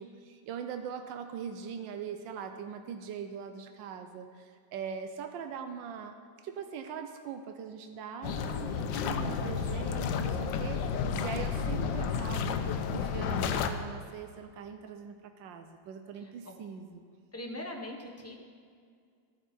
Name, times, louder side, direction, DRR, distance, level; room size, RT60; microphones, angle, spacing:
voice 1, 0.0-6.2 6.4-12.6 12.9-17.0, right 7 dB, 85° right, 7 dB, 1.4 m, -41 dB
sound 1, 8.2-13.7, left 6 dB, 85° left, 1.4 m, -31 dB
voice 2, 17.3-18.4, left 1 dB, 15° left, 0 dB, 0.6 m, -41 dB
13.0 x 9.0 x 4.3 m, 2.1 s
omnidirectional pair, 2.0 m